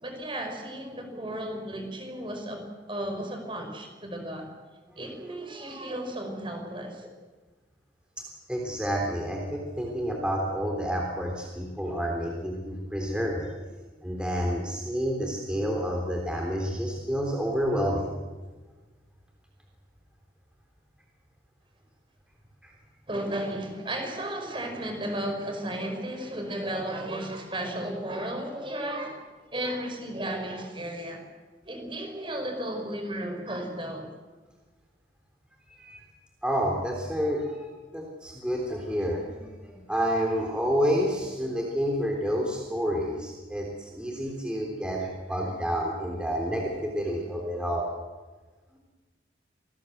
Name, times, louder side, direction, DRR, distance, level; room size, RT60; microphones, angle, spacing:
voice 1, 0.0-4.5 5.0-7.0 23.1-29.2 29.5-31.2 31.6-34.1, right 1 dB, 30° right, 5 dB, 4.8 m, -34 dB
voice 2, 8.5-13.5 14.0-18.1 22.6-22.7 32.6-32.7 35.8-36.0 36.4-47.9, equal, 5° right, -1 dB, 3.5 m, -29 dB
26.5 x 19.0 x 8.0 m, 1.3 s
head